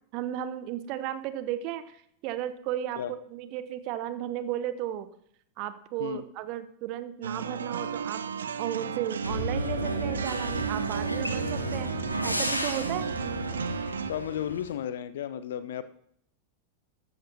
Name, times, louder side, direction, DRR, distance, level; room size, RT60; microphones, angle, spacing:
voice 1, 0.1-5.1 5.6-8.3 8.6-11.9 12.2-13.1, right 11 dB, 40° right, 13 dB, 0.9 m, -34 dB
sound 1, 7.2-14.1, right 7 dB, 65° right, 0.5 m, -34 dB
sound 2, 9.2-14.7, equal, 90° left, 1.2 m, -33 dB
voice 2, 14.1-15.8, left 10 dB, 60° left, 14 dB, 0.7 m, -33 dB
13.5 x 13.5 x 2.9 m, 0.69 s
figure-of-eight pair, 90°, 0 cm